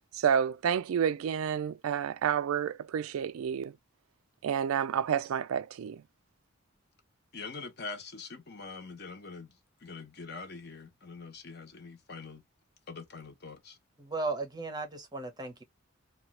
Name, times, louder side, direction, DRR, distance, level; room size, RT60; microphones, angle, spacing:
voice 1, 0.1-3.7 4.4-6.0, right 8 dB, 80° right, 0.3 m, -29 dB
voice 2, 7.3-9.5 9.8-12.4 12.9-13.8, left 4 dB, 50° left, 0.9 m, -44 dB
voice 3, 14.0-15.6, right 3 dB, 20° right, 0.6 m, -36 dB
2.8 x 2.3 x 2.8 m
head